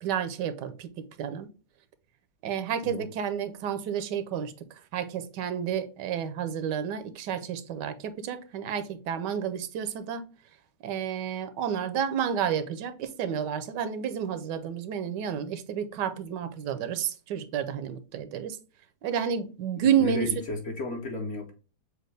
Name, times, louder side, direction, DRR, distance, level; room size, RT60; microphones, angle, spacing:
voice 1, 0.0-1.5 2.4-4.5 4.9-10.2 10.8-18.6 19.0-20.3, right 8 dB, 90° right, 1.2 m, -30 dB
voice 2, 20.0-21.5, left 2 dB, 55° left, 1.0 m, -33 dB
6.4 x 2.4 x 3.2 m
omnidirectional pair, 1.8 m